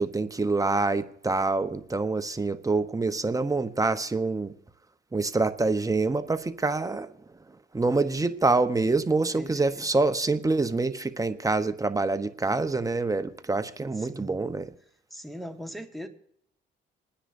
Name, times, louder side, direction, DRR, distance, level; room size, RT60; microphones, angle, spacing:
voice 1, 0.0-4.5 5.1-7.1 7.7-14.7, right 3 dB, 15° right, 0.9 m, -26 dB
voice 2, 9.3-9.9 13.9-14.4 15.1-16.1, equal, ahead, 1.5 m, -40 dB
27.5 x 9.9 x 2.6 m
cardioid pair, 90°, 20 cm